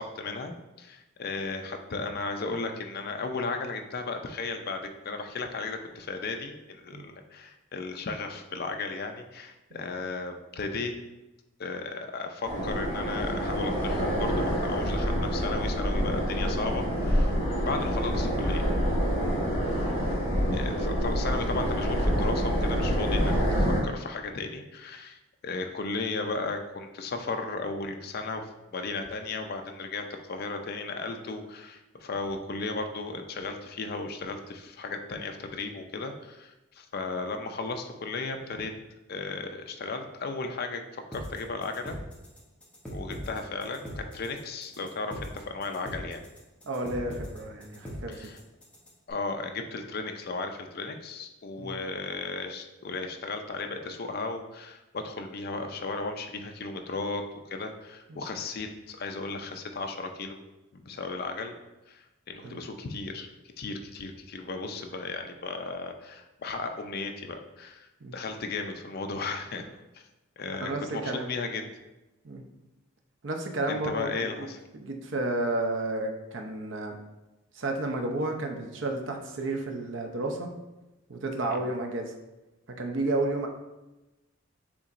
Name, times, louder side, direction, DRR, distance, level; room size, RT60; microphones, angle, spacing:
voice 1, 0.0-10.9 11.6-17.3 17.6-18.6 20.5-25.2 25.4-38.7 39.1-40.8 41.1-42.0 42.9-46.2 48.1-48.4 49.1-60.4 60.7-61.6 61.9-63.3 63.6-67.9 68.1-69.7 69.9-70.0 70.4-71.7 73.7-74.6 81.5-81.6, left 3 dB, 50° left, 5 dB, 0.5 m, -35 dB
sound 1, 12.4-23.8, equal, 80° left, 1.3 m, -27 dB
sound 2, 41.1-49.1, equal, 5° left, 0.8 m, -40 dB
voice 2, 46.6-48.3 51.6-51.8 58.1-58.2 62.4-62.6 68.0-68.1 70.6-71.3 72.2-72.4 73.2-74.5 74.7-76.9 77.5-80.5 81.1-82.1 82.8-83.5, right 2 dB, 65° right, 3 dB, 0.6 m, -32 dB
6.9 x 2.9 x 2.5 m, 1.0 s
head